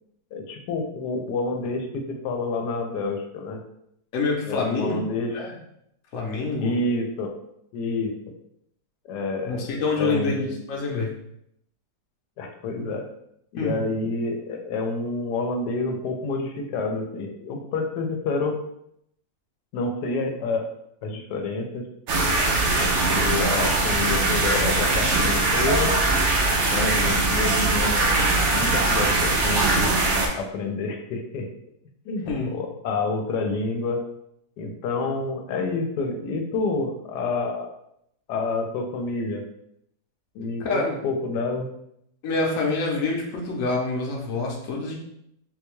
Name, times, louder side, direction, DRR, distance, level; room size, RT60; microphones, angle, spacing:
voice 1, 0.3-3.6 4.4-5.4 6.6-7.3 7.7-8.1 9.0-10.6 12.4-13.0 13.5-18.6 19.7-20.6 21.0-21.8 22.8-25.9 26.7-30.0 30.3-31.5 32.0-34.0 34.6-37.7 38.3-39.4 40.3-41.7, left 3 dB, 85° left, 3 dB, 1.2 m, -28 dB
voice 2, 4.1-5.0 5.3-5.5 6.1-6.7 9.5-11.1 12.8-12.9 13.6-13.8 32.3-32.5 40.6-40.9 42.2-45.0, left 3 dB, 60° left, -1 dB, 1.0 m, -26 dB
sound 1, 22.1-30.3, right 2 dB, 65° right, 0.7 m, -21 dB
3.9 x 2.2 x 3.0 m, 0.76 s
omnidirectional pair, 1.7 m